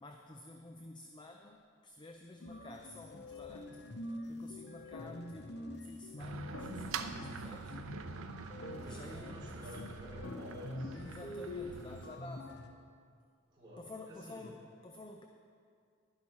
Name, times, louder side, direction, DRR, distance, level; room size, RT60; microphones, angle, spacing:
voice 1, 0.0-7.8 8.8-9.9 10.9-12.6 13.8-15.3, left 2 dB, 20° left, 4 dB, 0.4 m, -51 dB
sound 1, 2.4-12.7, left 1 dB, 55° left, 0.7 m, -46 dB
sound 2, 3.3-3.9 4.9-6.0 6.5-7.9 8.6-9.7 10.2-11.3, left 1 dB, 90° left, 0.9 m, -52 dB
sound 3, 6.2-12.2, right 5 dB, 80° right, 0.5 m, -45 dB
voice 2, 8.7-11.0 13.5-14.4, equal, 20° right, -6 dB, 2.8 m, -51 dB
11.0 x 11.0 x 4.2 m, 2.3 s
head